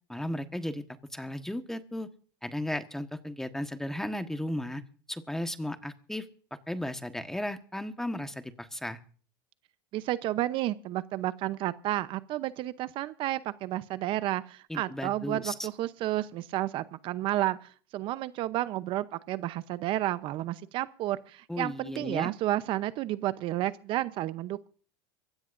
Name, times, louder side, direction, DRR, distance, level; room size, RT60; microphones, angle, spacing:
voice 1, 0.1-0.8 1.1-2.1 2.4-4.8 5.1-6.3 6.7-9.0 14.7-15.7 21.5-22.3, left 1 dB, 5° left, 8 dB, 1.4 m, -35 dB
voice 2, 9.9-24.7, right 15 dB, 50° right, 14 dB, 0.8 m, -31 dB
23.5 x 16.5 x 2.6 m, 0.42 s
supercardioid pair, 110°, 11 cm